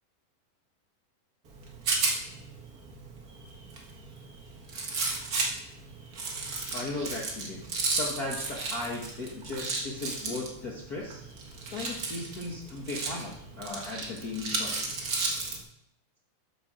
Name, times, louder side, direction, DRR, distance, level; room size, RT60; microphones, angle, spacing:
Rattle, 1.5-15.6, right 3 dB, 50° right, 1.1 m, -34 dB
voice 1, 6.7-11.2 11.7-14.9, left 2 dB, 60° left, -3 dB, 0.9 m, -37 dB
12.5 x 5.9 x 5.1 m, 0.79 s
omnidirectional pair, 4.0 m